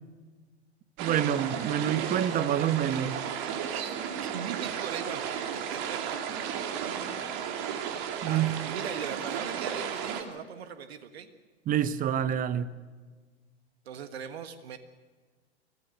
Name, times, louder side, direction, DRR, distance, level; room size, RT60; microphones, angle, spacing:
voice 1, 1.0-3.2 8.2-8.5 11.7-12.7, right 10 dB, 25° right, 15 dB, 1.0 m, -27 dB
sound 1, 1.0-10.2, right 8 dB, 45° right, 2.6 m, -34 dB
voice 2, 3.7-5.2 5.5-6.8 7.7-11.3 13.8-14.8, right 8 dB, 65° right, 10 dB, 1.6 m, -40 dB
25.0 x 15.5 x 8.0 m, 1.4 s
figure-of-eight pair, 100°, 34 cm